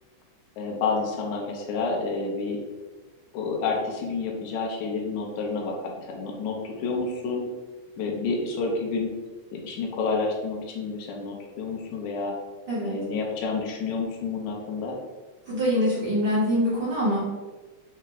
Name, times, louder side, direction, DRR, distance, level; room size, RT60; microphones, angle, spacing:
voice 1, 0.6-2.6 3.3-7.5 8.0-9.1 9.5-12.3 12.8-15.0, left 4 dB, 80° left, -1 dB, 2.0 m, -29 dB
voice 2, 15.5-17.2, equal, 60° right, -9 dB, 1.2 m, -24 dB
5.3 x 2.1 x 3.7 m, 1.2 s
omnidirectional pair, 3.5 m